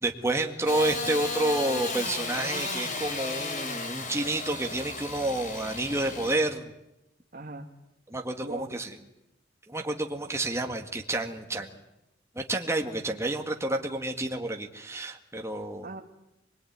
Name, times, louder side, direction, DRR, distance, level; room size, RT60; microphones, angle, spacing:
voice 1, 0.0-6.7 8.1-8.9 9.7-11.7 12.4-15.9, right 2 dB, 15° right, 3 dB, 1.9 m, -29 dB
Engine starting / Sawing, 0.7-6.3, left 3 dB, 45° left, 4.1 m, -34 dB
voice 2, 0.7-1.0 7.3-7.7 8.4-8.8 15.8-16.0, right 2 dB, 45° right, 2 dB, 1.9 m, -40 dB
24.0 x 21.5 x 9.5 m, 0.89 s
head